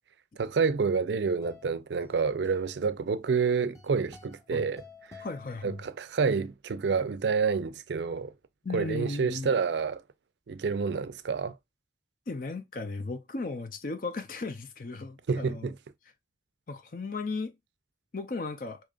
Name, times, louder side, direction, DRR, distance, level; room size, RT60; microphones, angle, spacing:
voice 1, 0.4-4.8 5.1-5.2 5.6-8.3 8.7-10.0 10.5-11.6 15.3-15.8, right 5 dB, 75° right, 0.4 m, -28 dB
sound 1, 0.8-6.2, left 4 dB, 15° left, 0.8 m, -53 dB
voice 2, 5.2-5.8 8.6-9.6 12.3-15.7 16.7-17.5 18.1-18.8, left 3 dB, 50° left, 0.5 m, -36 dB
5.0 x 2.9 x 2.4 m
head